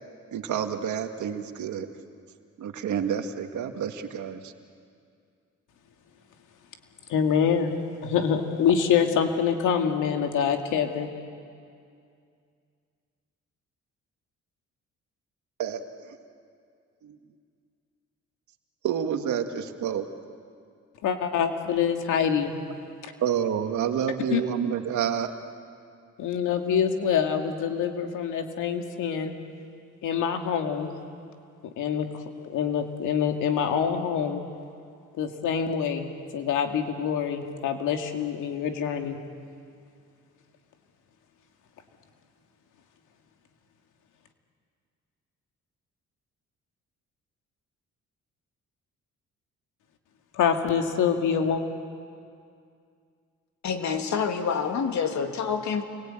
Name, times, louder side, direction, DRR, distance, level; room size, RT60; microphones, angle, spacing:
voice 1, 0.3-1.9 2.6-4.5 15.6-15.8 16.1-16.2 17.0-17.2 18.8-20.1 23.2-25.3, right 8 dB, 75° right, 6 dB, 1.9 m, -29 dB
voice 2, 7.1-7.8 8.0-11.1 21.0-22.5 23.0-23.1 24.3-24.4 26.2-29.3 30.0-31.0 31.6-34.4 35.2-39.2 50.3-51.6, left 7 dB, 85° left, 4 dB, 2.4 m, -25 dB
voice 3, 53.6-55.8, left 6 dB, 65° left, 5 dB, 2.4 m, -27 dB
29.0 x 22.5 x 9.0 m, 2.3 s
cardioid pair, 90°, 30 cm